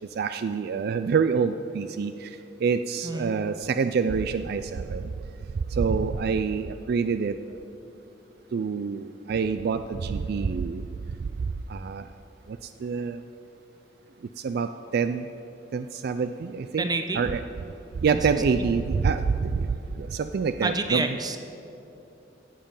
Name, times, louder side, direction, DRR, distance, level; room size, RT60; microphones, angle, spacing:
voice 1, 0.2-2.1 2.6-5.0 5.8-7.3 8.5-10.8 11.7-12.0 12.8-13.2 14.4-15.2 15.7-16.9 17.1-17.4 18.0-19.7 20.0-21.1, right 5 dB, 60° right, 10 dB, 0.3 m, -26 dB
voice 2, 16.8-17.2 18.1-18.2 20.6-21.4, right 3 dB, 20° right, 7 dB, 0.7 m, -28 dB
16.0 x 7.5 x 5.4 m, 2.8 s
head